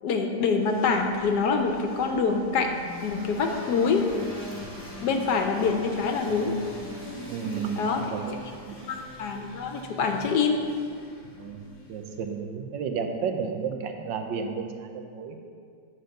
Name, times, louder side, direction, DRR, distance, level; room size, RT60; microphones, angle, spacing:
voice 1, 0.0-2.7 3.0-4.0 5.0-6.5 7.8-8.0 8.9-10.6, left 5 dB, 70° left, 4 dB, 1.2 m, -25 dB
sound 1, 0.6-12.4, left 1 dB, 20° left, 1.4 m, -42 dB
voice 2, 7.3-8.4 8.7-8.8 11.4-11.6 11.9-15.4, right 6 dB, 75° right, 5 dB, 1.4 m, -32 dB
9.5 x 4.5 x 6.4 m, 2.2 s
omnidirectional pair, 2.0 m